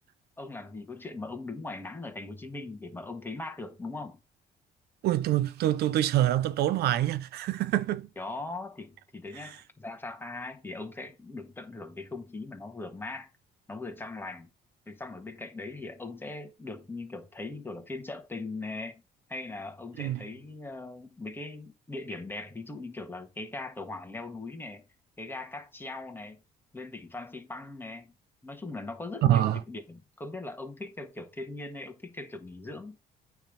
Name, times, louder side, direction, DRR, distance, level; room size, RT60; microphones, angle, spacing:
voice 1, 0.4-4.2 8.2-13.3 13.7-14.5 14.9-19.0 19.3-24.8 25.2-26.4 26.7-28.1 28.4-33.0, left 2 dB, 10° left, 1.7 m, -40 dB
voice 2, 5.0-8.1 9.3-9.6 20.0-20.2 29.2-29.6, right 13 dB, 70° right, 0.7 m, -26 dB
9.0 x 3.6 x 5.1 m
cardioid pair, 110°, 17 cm